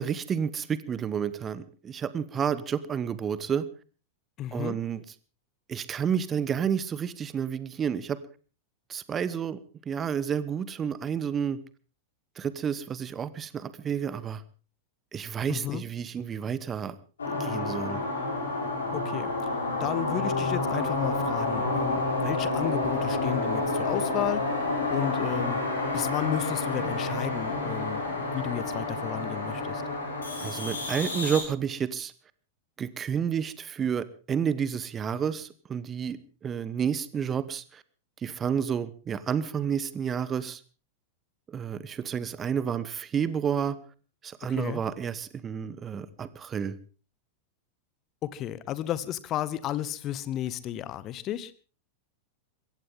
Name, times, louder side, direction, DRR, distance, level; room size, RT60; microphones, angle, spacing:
voice 1, 0.0-3.6 4.5-5.0 5.7-8.2 8.9-9.6 9.9-11.6 12.4-14.4 15.1-17.0 17.3-18.0 30.4-32.1 32.8-37.8 38.2-40.6 41.5-43.8 44.2-46.8, right 7 dB, 25° right, 16 dB, 1.1 m, -30 dB
voice 2, 4.4-4.8 15.5-15.8 18.9-19.3 19.8-24.4 24.9-25.6 25.9-29.8 44.6-44.8 48.2-51.5, left 12 dB, 35° left, 17 dB, 1.2 m, -33 dB
sound 1, 17.2-31.4, left 2 dB, 70° left, 6.9 m, -29 dB
22.5 x 17.0 x 3.7 m, 0.36 s
figure-of-eight pair, 90°, 0 cm